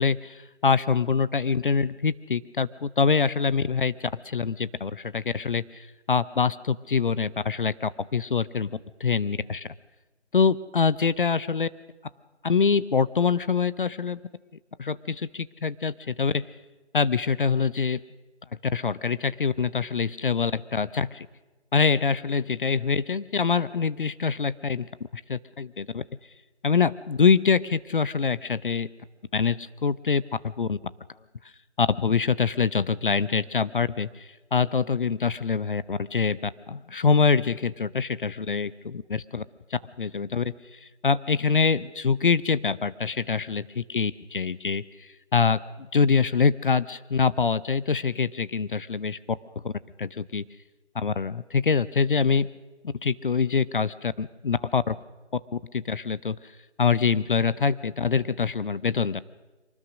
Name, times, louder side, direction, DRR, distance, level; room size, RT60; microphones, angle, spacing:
voice 1, 0.0-9.7 10.3-11.7 12.4-14.2 14.8-16.5 16.9-18.0 18.6-21.3 21.7-24.9 25.1-26.0 26.6-28.9 29.3-30.8 31.8-39.4 39.7-49.4 49.6-49.7 50.0-50.4 50.9-52.5 52.8-55.0 55.5-56.4 56.8-59.2, left 5 dB, 45° left, 17 dB, 0.6 m, -25 dB
24.0 x 19.5 x 6.3 m, 1.2 s
figure-of-eight pair, 155°, 35 cm